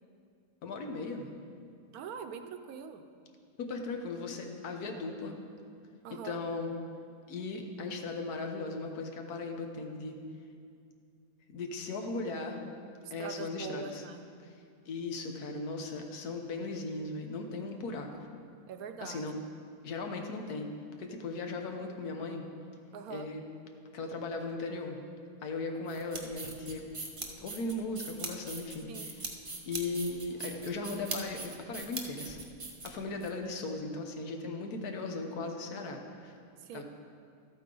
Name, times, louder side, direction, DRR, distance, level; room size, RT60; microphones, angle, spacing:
voice 1, 0.6-1.3 3.6-5.4 6.1-6.7 7.3-10.2 11.5-12.6 13.1-14.0 14.9-18.3 19.0-19.4 19.8-20.7 21.0-22.4 23.1-23.4 23.9-25.0 25.4-26.9 27.4-29.1 29.7-32.4 32.8-36.4 36.7-36.8, left 3 dB, 80° left, 4 dB, 1.4 m, -37 dB
voice 2, 1.9-3.0 6.0-6.4 13.0-14.2 18.7-19.3 22.9-23.3 28.9-29.1 36.6-36.8, right 6 dB, 75° right, 7 dB, 1.1 m, -43 dB
sound 1, 25.9-33.3, right 3 dB, 30° right, 0.6 m, -41 dB
13.0 x 8.6 x 3.8 m, 2.3 s
omnidirectional pair, 1.6 m